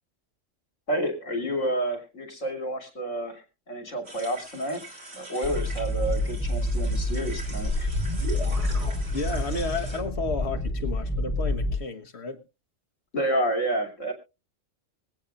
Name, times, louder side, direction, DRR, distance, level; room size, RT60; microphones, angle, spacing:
voice 1, 0.9-7.9 13.1-14.1, right 1 dB, 75° left, 3.6 m, -30 dB
sound 1, 4.0-10.0, right 2 dB, 70° right, 3.6 m, -44 dB
sound 2, 5.4-11.8, left 1 dB, 5° left, 3.4 m, -28 dB
sound 3, 7.0-9.7, left 1 dB, 40° right, 5.9 m, -33 dB
voice 2, 9.1-12.4, left 4 dB, 60° left, 1.5 m, -32 dB
24.0 x 8.6 x 2.5 m
omnidirectional pair, 1.3 m